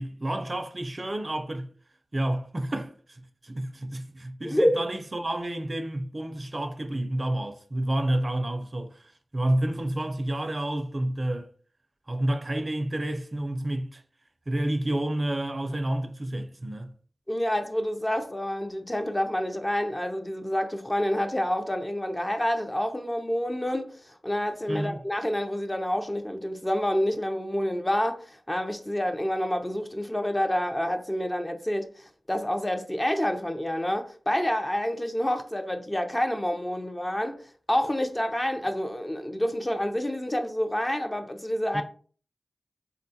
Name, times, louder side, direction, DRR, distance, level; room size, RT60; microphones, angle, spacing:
voice 1, 0.0-1.7 2.1-11.5 12.1-14.0 14.5-16.9 24.7-25.0 41.7-41.8, right 1 dB, 45° right, 0.4 m, -30 dB
voice 2, 4.4-4.8 17.3-41.8, equal, 25° left, 0.4 m, -28 dB
3.7 x 2.2 x 2.7 m
cardioid pair, 40°, 0 cm